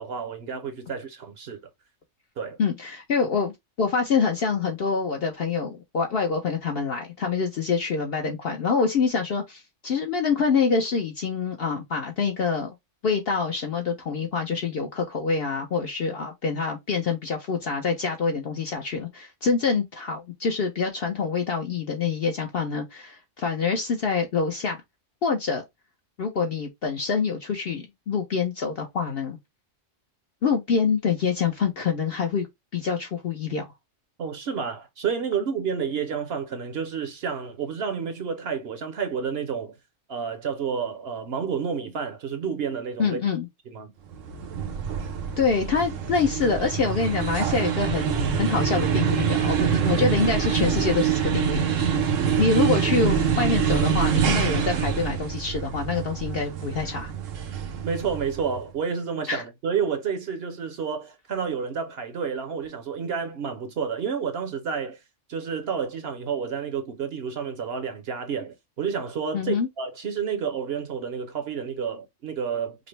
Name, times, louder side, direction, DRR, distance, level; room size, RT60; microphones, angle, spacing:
voice 1, 0.0-1.6 2.4-2.6 34.2-39.7 40.1-43.2 43.7-43.9 57.8-65.0 65.3-72.9, right 6 dB, 60° right, 0.9 m, -30 dB
voice 2, 2.6-3.5 3.8-12.7 13.0-24.8 25.2-25.6 26.2-29.4 30.4-32.5 32.7-33.6 43.0-43.5 45.4-51.9 52.4-57.1 59.3-59.4 69.3-69.7, left 5 dB, 60° left, 0.8 m, -26 dB
sound 1, 44.1-58.6, right 7 dB, 85° right, 1.1 m, -25 dB
5.1 x 2.0 x 3.2 m
omnidirectional pair, 1.3 m